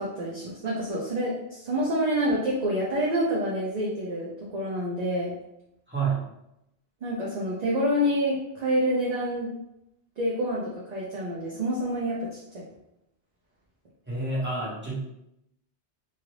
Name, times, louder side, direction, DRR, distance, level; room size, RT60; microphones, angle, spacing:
voice 1, 0.0-5.3 7.0-9.5 10.2-12.6, equal, 50° right, -5 dB, 0.6 m, -27 dB
voice 2, 5.9-6.2 14.1-15.0, right 4 dB, 10° right, -8 dB, 1.1 m, -28 dB
2.8 x 2.5 x 3.1 m, 0.85 s
omnidirectional pair, 1.1 m